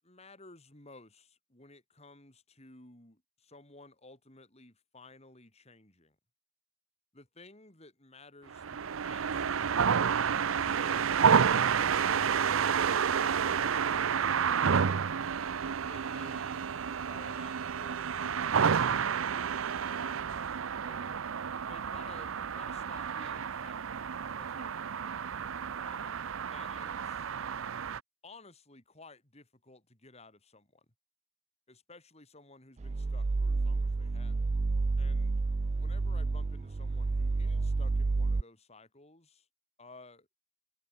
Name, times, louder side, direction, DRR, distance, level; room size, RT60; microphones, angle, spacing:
voice 1, 0.0-6.1 7.1-10.2 10.6-12.4 13.1-15.1 15.8-16.7 17.1-20.5 20.8-21.2 21.6-24.0 24.4-25.1 25.8-26.2 26.5-27.3 28.2-30.8 31.7-34.4 35.0-35.4 35.7-39.5 39.8-40.3, left 3 dB, 30° left, 5.1 m, -55 dB
sound 1, 8.5-28.0, right 7 dB, 90° right, 0.6 m, -30 dB
sound 2, 32.8-38.4, right 3 dB, 35° right, 0.4 m, -30 dB
head